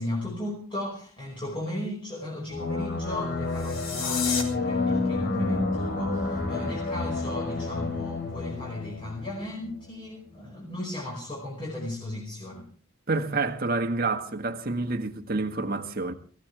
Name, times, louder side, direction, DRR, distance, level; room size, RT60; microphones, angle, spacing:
voice 1, 0.0-12.7, left 1 dB, 25° left, 5.3 m, -36 dB
sound 1, 2.5-9.9, left 3 dB, 50° left, 2.8 m, -29 dB
sound 2, 3.5-4.4, left 6 dB, 70° left, 3.8 m, -31 dB
voice 2, 13.1-16.1, right 3 dB, 45° right, 1.7 m, -28 dB
24.5 x 16.5 x 3.4 m
head